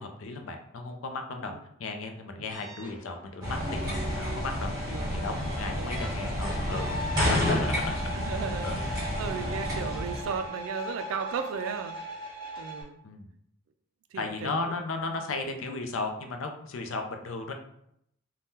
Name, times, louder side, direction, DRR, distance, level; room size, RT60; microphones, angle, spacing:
voice 1, 0.0-1.5 1.8-8.0 8.6-8.8 13.0-13.3 14.1-17.5, left 3 dB, 70° left, 5 dB, 0.5 m, -35 dB
sound 1, 2.5-12.8, equal, 25° left, 0.8 m, -41 dB
sound 2, 3.4-10.4, equal, 20° right, 1.1 m, -30 dB
voice 2, 8.1-13.0 14.1-14.5, right 6 dB, 70° right, 7 dB, 0.3 m, -36 dB
2.7 x 2.2 x 3.5 m, 0.72 s
head